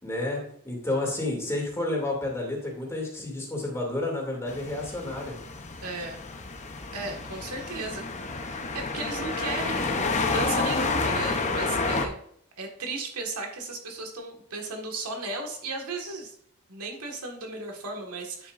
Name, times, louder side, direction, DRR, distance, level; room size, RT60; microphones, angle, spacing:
voice 1, 0.0-5.4, left 2 dB, 15° left, -2 dB, 2.5 m, -30 dB
sound 1, 4.5-12.1, left 3 dB, 30° left, 0.8 m, -30 dB
voice 2, 5.8-6.2 6.9-8.0 8.4-12.2 12.6-16.3 16.7-18.5, right 3 dB, 85° right, 2 dB, 1.7 m, -35 dB
9.2 x 7.1 x 2.5 m, 0.66 s
head